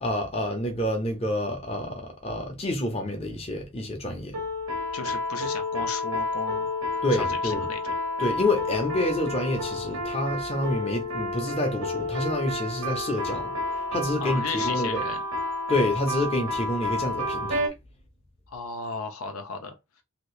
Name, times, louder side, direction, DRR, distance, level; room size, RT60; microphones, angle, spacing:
voice 1, 0.0-4.4 7.0-7.6 8.2-15.0 15.7-17.6, left 1 dB, 25° left, 0.8 m, -28 dB
sound 1, 4.3-17.7, left 2 dB, 85° right, 1.1 m, -30 dB
voice 2, 4.9-7.8 14.2-15.2 18.5-20.0, left 4 dB, 75° left, 0.6 m, -35 dB
2.9 x 2.7 x 3.2 m
head